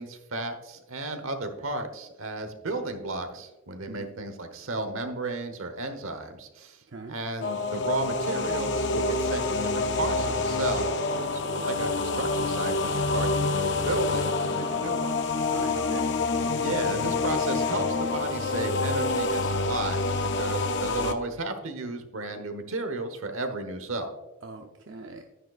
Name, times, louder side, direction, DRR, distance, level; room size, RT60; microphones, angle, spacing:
voice 1, 0.0-6.8 7.1-11.0 11.3-15.2 16.4-24.1, right 2 dB, 75° right, 8 dB, 1.1 m, -33 dB
sound 1, 7.4-21.1, left 3 dB, 55° left, 0.6 m, -27 dB
voice 2, 14.4-14.9 15.5-16.1 24.4-25.2, right 3 dB, 55° right, 3 dB, 0.6 m, -41 dB
10.0 x 9.4 x 2.4 m, 1.0 s
head